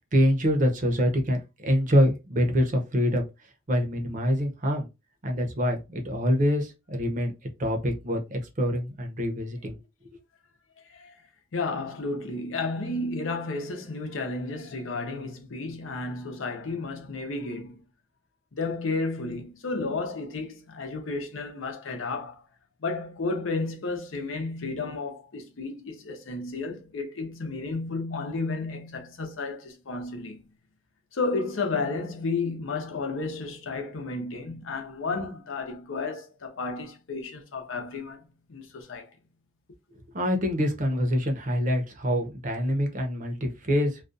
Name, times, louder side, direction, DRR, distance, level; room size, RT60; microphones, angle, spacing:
voice 1, 0.1-3.3 3.7-4.9 5.2-7.3 7.6-9.8 40.1-44.0, equal, 40° right, 0.6 m, -25 dB
voice 2, 11.5-17.8 18.5-22.4 22.8-30.4 31.1-38.2 38.5-39.1, left 3 dB, 85° left, 0.7 m, -32 dB
2.4 x 2.2 x 2.5 m
head